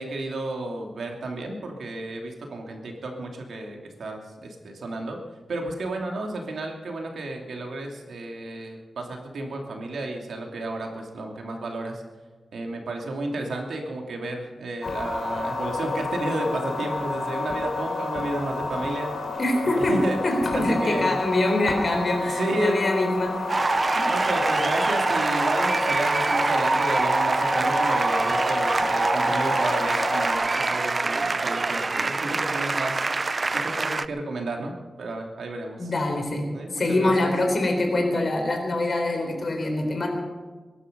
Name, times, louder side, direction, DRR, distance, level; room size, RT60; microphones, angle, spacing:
voice 1, 0.0-5.2 5.5-12.0 12.5-19.1 19.6-20.2 20.5-21.2 22.3-22.8 24.1-33.0 33.5-35.9 36.5-37.3, right 2 dB, 85° right, 2 dB, 2.7 m, -32 dB
sound 1, 14.8-30.3, left 3 dB, 65° left, 3.2 m, -30 dB
voice 2, 19.4-20.0 20.2-23.6 23.9-24.0 35.8-36.4 36.7-40.1, left 2 dB, 45° left, 3 dB, 3.8 m, -24 dB
sound 2, 23.5-34.1, right 3 dB, 35° right, 0.5 m, -24 dB
22.0 x 11.5 x 5.4 m, 1.4 s
wide cardioid pair, 125°, 0 cm